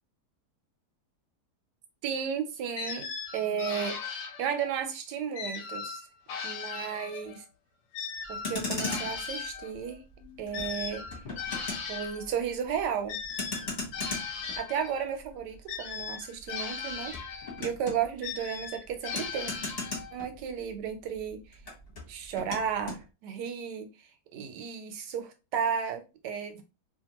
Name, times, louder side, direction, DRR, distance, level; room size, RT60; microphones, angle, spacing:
voice 1, 2.0-3.1 3.3-4.0 4.4-6.0 6.4-7.4 8.3-10.0 10.4-11.0 11.9-13.1 14.6-17.1 17.6-19.5 20.1-21.4 22.1-23.9 24.3-26.6, right 7 dB, 85° right, 1.2 m, -33 dB
sound 1, 2.8-4.8 5.3-7.4 7.9-12.3 13.1-15.1 15.7-17.7 18.2-20.2, left 5 dB, 85° left, 1.3 m, -38 dB
Motor vehicle (road), 8.2-20.9 21.1-23.0, left 3 dB, 40° left, 1.2 m, -39 dB
2.8 x 2.5 x 2.9 m
omnidirectional pair, 1.8 m